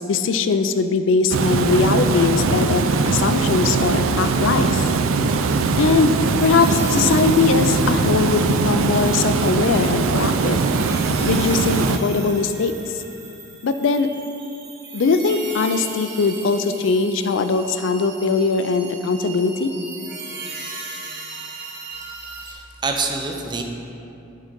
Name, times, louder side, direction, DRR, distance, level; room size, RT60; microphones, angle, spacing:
voice 1, 0.0-4.9 5.8-6.1 6.4-10.6 11.3-13.0 13.6-14.1 14.9-19.7, left 4 dB, 65° left, 9 dB, 0.4 m, -20 dB
Water, 1.3-12.0, right 4 dB, 80° right, 0.4 m, -20 dB
sound 1, 4.5-22.5, right 4 dB, 60° right, 1.0 m, -38 dB
voice 2, 22.4-23.6, right 3 dB, 20° right, 3 dB, 0.5 m, -26 dB
8.9 x 3.9 x 5.2 m, 2.7 s
head